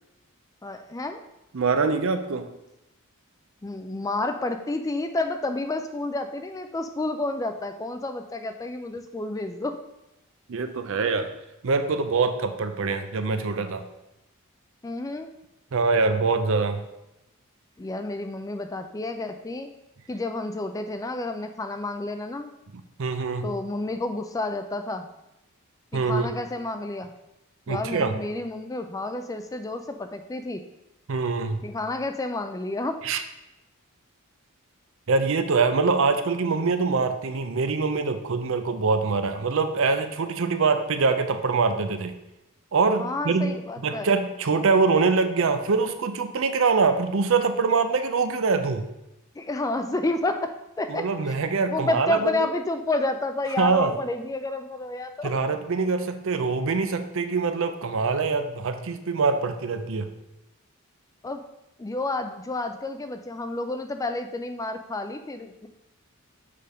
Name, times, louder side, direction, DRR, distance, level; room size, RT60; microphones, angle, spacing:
voice 1, 0.6-1.2 3.6-9.8 14.8-15.3 17.8-19.7 20.1-22.5 23.4-25.1 25.9-27.1 27.7-30.6 31.6-33.0 43.0-44.1 49.4-50.5 50.8-51.3 51.7-55.3 61.2-61.4 61.8-65.7, left 2 dB, 15° left, 7 dB, 0.3 m, -30 dB
voice 2, 1.5-2.5 10.5-11.3 11.6-13.8 15.7-16.8 23.0-23.5 25.9-26.3 27.7-28.2 31.1-31.6 33.0-33.2 35.1-42.1 42.7-43.5 43.8-48.9 50.9-52.5 53.6-53.9 55.2-60.1, right 4 dB, 60° right, 8 dB, 0.5 m, -24 dB
6.7 x 3.5 x 5.1 m, 0.92 s
head